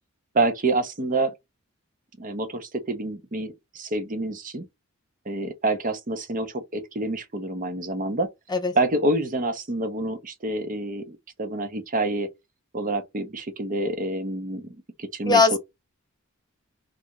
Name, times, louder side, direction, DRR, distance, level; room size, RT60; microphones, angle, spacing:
voice 1, 0.3-1.3 2.2-4.6 5.3-8.3 8.7-12.3 12.7-14.7 15.0-15.6, right 2 dB, 40° right, 0.8 m, -27 dB
voice 2, 15.3-15.6, left 4 dB, 20° left, 0.6 m, -19 dB
3.4 x 2.6 x 4.6 m
head